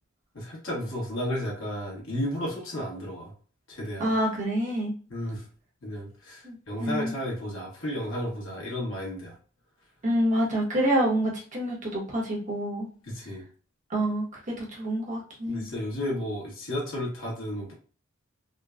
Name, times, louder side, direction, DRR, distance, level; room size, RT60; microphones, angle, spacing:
voice 1, 0.3-3.3 3.7-4.1 5.1-5.4 5.8-9.3 13.0-13.4 15.5-17.7, left 1 dB, 75° left, -3 dB, 1.3 m, -33 dB
voice 2, 4.0-4.9 6.4-7.1 10.0-12.9 13.9-14.3 14.6-15.6, right 1 dB, 40° right, -3 dB, 1.1 m, -27 dB
3.7 x 2.2 x 2.3 m, 0.39 s
head